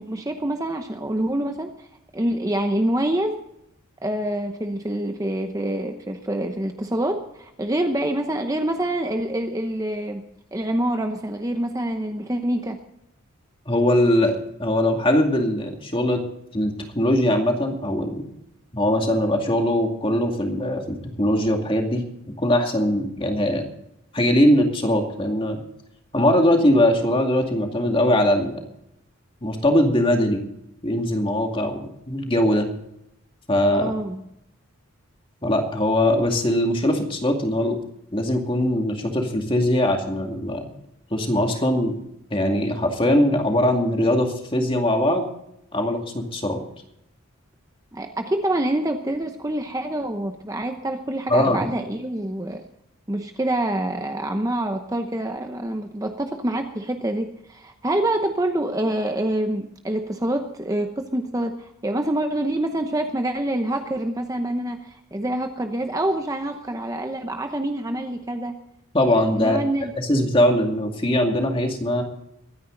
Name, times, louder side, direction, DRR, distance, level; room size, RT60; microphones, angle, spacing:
voice 1, 0.0-1.9 2.1-3.4 4.0-10.2 10.5-12.8 33.7-34.2 47.9-52.6 53.1-68.5 69.4-69.9, right 1 dB, 15° right, 5 dB, 0.8 m, -26 dB
voice 2, 13.7-16.2 16.5-18.2 18.7-20.8 21.2-22.0 22.4-23.7 24.1-25.6 26.1-28.6 29.4-30.4 30.8-32.7 33.5-33.9 35.4-37.8 38.1-40.7 41.1-41.9 42.3-45.3 45.7-46.6 51.3-51.7 68.9-69.6 70.0-72.0, left 1 dB, 25° left, 3 dB, 2.3 m, -21 dB
23.0 x 10.0 x 3.9 m, 0.79 s
head